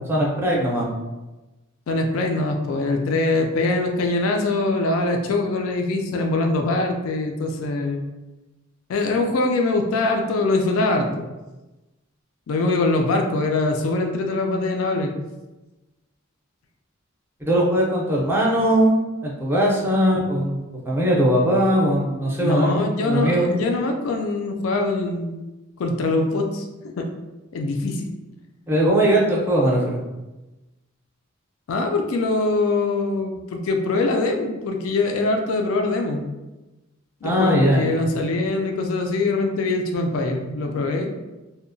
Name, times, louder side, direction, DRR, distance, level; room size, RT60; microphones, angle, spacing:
voice 1, 0.1-0.9 17.4-20.6 20.9-23.5 28.7-30.0 37.2-37.9, right 1 dB, 10° right, -4 dB, 0.5 m, -20 dB
voice 2, 1.9-8.1 8.9-11.2 12.5-15.1 20.1-20.2 22.4-25.4 25.8-27.1 27.5-28.1 31.7-36.2 37.2-41.1, left 2 dB, 80° left, 3 dB, 0.3 m, -23 dB
2.7 x 2.1 x 2.6 m, 1.1 s
head